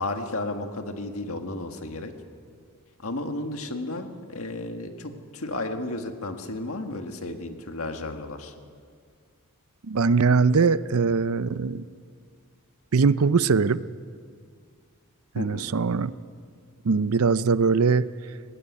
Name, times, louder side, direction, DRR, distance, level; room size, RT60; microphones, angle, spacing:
voice 1, 0.0-2.1 3.0-8.5 15.3-15.7, left 2 dB, 70° left, 5 dB, 1.8 m, -33 dB
voice 2, 9.9-11.9 12.9-13.8 15.4-16.1 16.8-18.1, right 5 dB, 70° right, 16 dB, 0.6 m, -21 dB
19.0 x 15.5 x 9.7 m, 2.1 s
head